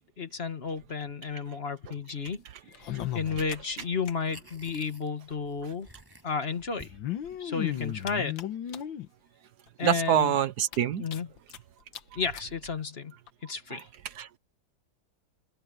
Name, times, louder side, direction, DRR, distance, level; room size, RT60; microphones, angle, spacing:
voice 1, 0.0-2.4 2.7-5.9 6.2-6.9 7.4-8.4 9.8-10.3 11.0-11.3 12.1-13.1 13.4-13.9, left 5 dB, 35° left, 1.6 m, -32 dB
sound 1, 2.7-4.1 4.4-4.5 4.7-4.8 5.8-5.9 6.8-9.1 9.7-9.8 10.1-10.2 10.6-11.6 11.9-12.0 12.3-12.5 13.3-13.4, left 11 dB, 75° left, 1.8 m, -35 dB
sound 2, 3.3-3.5 3.8-7.4, right 1 dB, 10° right, 7.2 m, -54 dB
voice 2, 9.8-11.0 13.7-13.8 14.0-14.4, right 9 dB, 65° right, 1.3 m, -26 dB
omnidirectional pair, 2.2 m